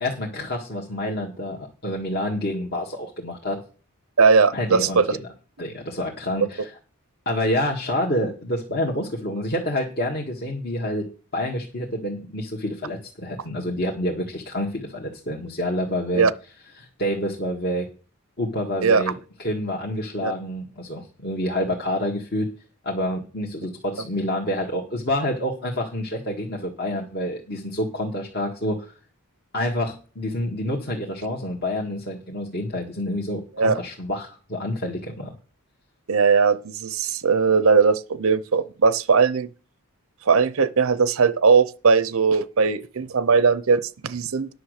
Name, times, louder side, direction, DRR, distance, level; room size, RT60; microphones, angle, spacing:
voice 1, 0.0-3.6 4.5-5.2 5.6-6.7 7.3-16.3 16.8-17.9 18.4-19.1 19.4-22.5 22.8-28.9 29.5-35.3 37.0-37.1, left 1 dB, 45° left, 1.7 m, -28 dB
voice 2, 4.2-5.2 16.1-16.3 18.8-19.0 20.2-20.3 33.6-33.8 36.1-39.5 40.3-44.5, right 5 dB, 65° right, 0.6 m, -19 dB
10.0 x 6.4 x 6.5 m
head